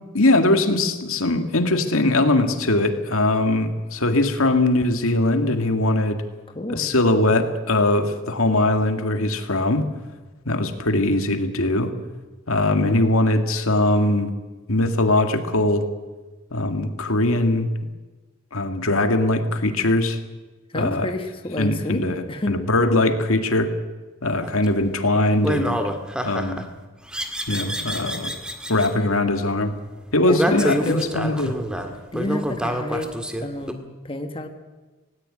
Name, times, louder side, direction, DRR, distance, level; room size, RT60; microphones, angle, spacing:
voice 1, 0.1-6.2 6.7-9.9 10.5-11.9 12.5-14.3 14.7-15.9 16.5-17.7 18.5-20.2 20.7-21.1 21.6-23.7 24.2-25.8 26.2-26.6 27.5-28.3 28.7-29.7 30.1-31.5, left 2 dB, 80° left, 7 dB, 2.1 m, -21 dB
voice 2, 6.5-6.9 20.7-22.6 30.2-31.3 32.1-33.1 33.4-34.5, left 1 dB, 25° left, 5 dB, 1.5 m, -29 dB
sound 1, 24.4-24.7 25.4-26.6 27.1-28.9 30.3-33.7, equal, 5° right, 1.8 m, -27 dB
18.0 x 17.5 x 9.8 m, 1.3 s
head